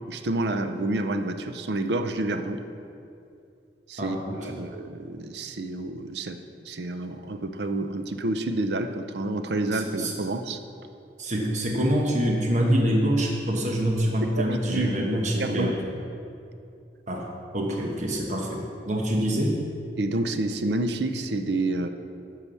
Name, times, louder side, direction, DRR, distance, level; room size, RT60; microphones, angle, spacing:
voice 1, 0.1-2.6 3.9-4.2 4.6-6.4 6.6-10.6 14.2-15.1 15.4-15.7 20.0-21.9, right 2 dB, 70° right, 8 dB, 0.6 m, -28 dB
voice 2, 4.0-4.6 9.7-10.1 11.2-15.8 17.1-17.3 17.5-19.6, equal, 45° right, -1 dB, 1.1 m, -25 dB
10.5 x 4.8 x 6.9 m, 2.6 s
head